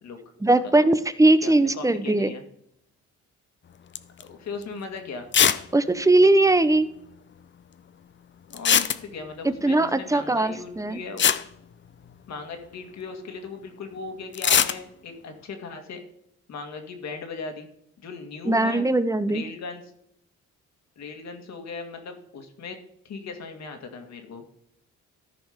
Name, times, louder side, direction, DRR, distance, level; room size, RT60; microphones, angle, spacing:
voice 1, 0.4-2.3 5.7-6.9 9.4-11.0 18.4-19.4, right 2 dB, 10° right, 13 dB, 0.7 m, -20 dB
voice 2, 1.4-2.4 4.2-5.3 8.5-11.3 12.3-16.0 16.5-17.7 18.0-18.8 19.3-19.8 21.0-22.8 23.0-24.4, left 4 dB, 60° left, 5 dB, 2.0 m, -38 dB
sound 1, 4.0-4.2 4.6-4.7 5.3-5.7 5.9-6.0 6.2-6.3 8.5-9.4 10.8-10.9 11.2-12.4 14.3-14.8, left 8 dB, 40° left, 0.6 m, -21 dB
14.0 x 5.3 x 5.1 m, 0.75 s
cardioid pair, 90°, 30 cm